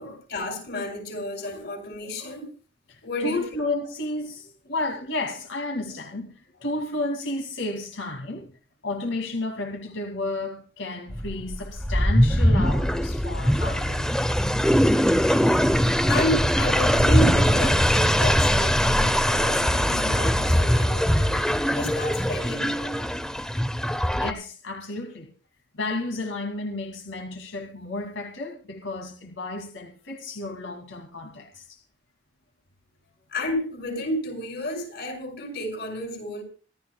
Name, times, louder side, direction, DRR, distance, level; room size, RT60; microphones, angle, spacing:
voice 1, 0.0-2.5 3.0-3.5 16.0-21.4 21.6-23.1 33.3-36.4, equal, 60° left, 6.1 m, -31 dB
voice 2, 2.9-8.5 8.8-14.5 24.1-25.3 25.7-31.8, left 2 dB, 80° left, 2.5 m, -32 dB
sound 1, 11.1-24.3, equal, 5° left, 0.7 m, -21 dB
26.0 x 13.0 x 2.3 m
head